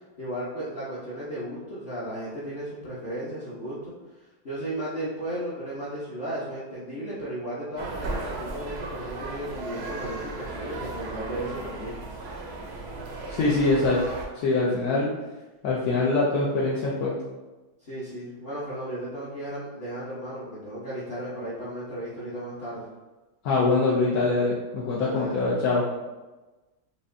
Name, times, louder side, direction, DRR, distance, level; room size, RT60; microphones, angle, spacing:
voice 1, 0.2-3.9 4.4-11.9 17.8-22.8 24.9-25.5 26.0-26.1, right 1 dB, 40° left, -10 dB, 0.9 m, -35 dB
sound 1, 7.8-14.3, right 3 dB, 60° right, 0.7 m, -36 dB
voice 2, 13.3-14.0 14.4-15.1 15.6-17.2 23.4-25.8, left 3 dB, 75° left, -6 dB, 1.1 m, -23 dB
5.0 x 2.7 x 2.6 m, 1.2 s
omnidirectional pair, 1.7 m